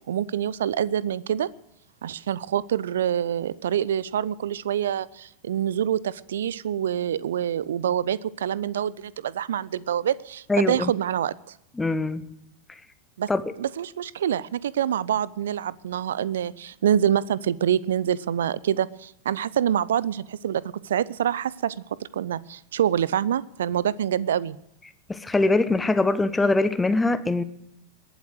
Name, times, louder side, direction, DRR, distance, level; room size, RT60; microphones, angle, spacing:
voice 1, 0.1-1.5 2.0-11.3 13.2-13.3 13.6-21.7 22.1-24.6, right 10 dB, 60° right, 0.5 m, -26 dB
voice 2, 10.5-10.9 11.8-12.3 13.3-13.4 25.1-27.4, left 2 dB, 10° left, 0.9 m, -22 dB
21.5 x 8.0 x 6.4 m
figure-of-eight pair, 90°, 0 cm